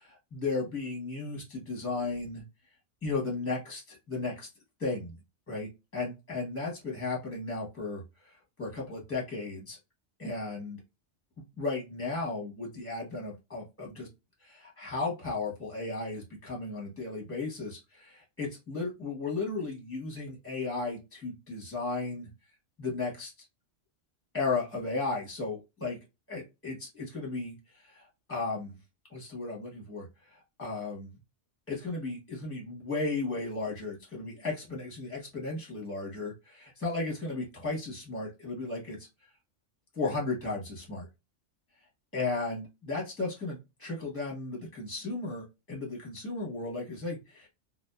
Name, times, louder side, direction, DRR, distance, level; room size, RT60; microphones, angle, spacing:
voice 1, 0.0-2.4 3.0-4.5 4.8-5.2 5.5-9.8 10.2-10.8 11.6-14.1 14.4-22.3 22.8-23.3 24.3-26.0 26.3-28.7 29.1-31.1 31.7-39.0 39.9-41.1 42.1-47.5, left 3 dB, 10° left, -3 dB, 0.9 m, -35 dB
2.7 x 2.2 x 2.2 m, 0.25 s
omnidirectional pair, 1.3 m